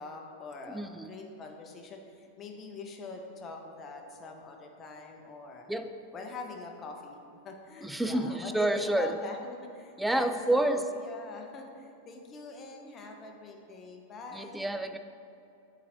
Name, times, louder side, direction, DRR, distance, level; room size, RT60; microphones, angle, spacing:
voice 1, 0.0-5.7 6.1-7.2 7.4-14.6, left 3 dB, 25° left, 2 dB, 0.7 m, -43 dB
voice 2, 0.7-1.1 5.7-5.9 7.8-9.2 10.0-10.8 14.3-15.0, right 1 dB, 5° right, 8 dB, 0.3 m, -29 dB
8.3 x 3.9 x 3.0 m, 2.6 s
figure-of-eight pair, 90°, 0 cm